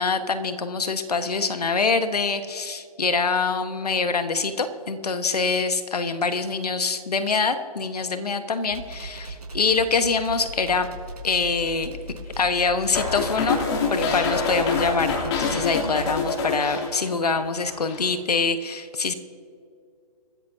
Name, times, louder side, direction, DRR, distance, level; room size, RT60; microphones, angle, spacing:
voice 1, 0.0-10.9 11.2-12.0 12.4-13.6 13.9-19.1, left 4 dB, 80° left, 9 dB, 1.3 m, -25 dB
sound 1, 8.7-16.3, equal, 90° right, 4.5 m, -38 dB
sound 2, 12.9-17.4 17.7-18.1, left 4 dB, 45° left, 3.0 m, -26 dB
26.0 x 14.0 x 2.8 m, 2.4 s
hypercardioid pair, 135°, 20 cm